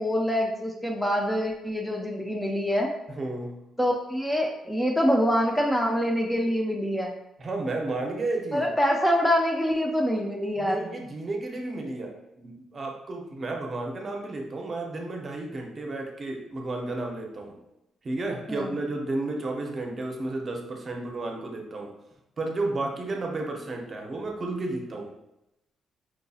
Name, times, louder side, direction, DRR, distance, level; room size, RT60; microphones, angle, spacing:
voice 1, 0.0-2.9 3.8-7.1 8.5-10.9 18.5-18.8, equal, 5° left, 1 dB, 0.4 m, -25 dB
voice 2, 3.1-3.6 7.4-8.7 10.6-17.6 18.0-21.9 22.4-25.1, right 2 dB, 40° right, 1 dB, 0.7 m, -32 dB
4.6 x 2.6 x 2.3 m, 0.87 s
cardioid pair, 90°, 0 cm